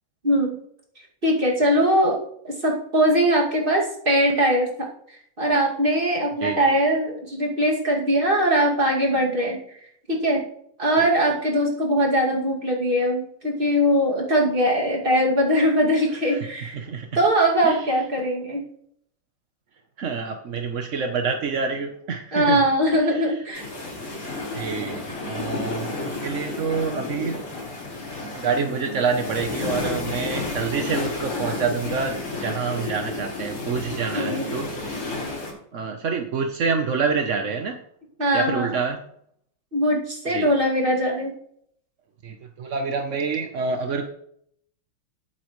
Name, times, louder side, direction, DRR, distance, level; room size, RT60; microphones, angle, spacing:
voice 1, 0.2-0.6 1.2-2.2 2.4-4.9 5.4-9.8 10.1-10.4 10.8-16.8 17.1-18.6 22.3-23.6 34.1-34.5 38.2-38.8 39.7-41.3, equal, 25° right, -2 dB, 2.4 m, -21 dB
voice 2, 16.7-17.1 17.6-17.8 20.0-22.6 23.1-23.3 24.5-27.4 28.3-35.0 35.7-37.8 38.3-39.0 40.3-40.5 42.2-44.0, right 5 dB, 55° right, 5 dB, 0.9 m, -27 dB
sound 1, 23.5-35.5, left 2 dB, 80° left, 5.6 m, -31 dB
18.5 x 8.7 x 3.2 m, 0.69 s
omnidirectional pair, 2.4 m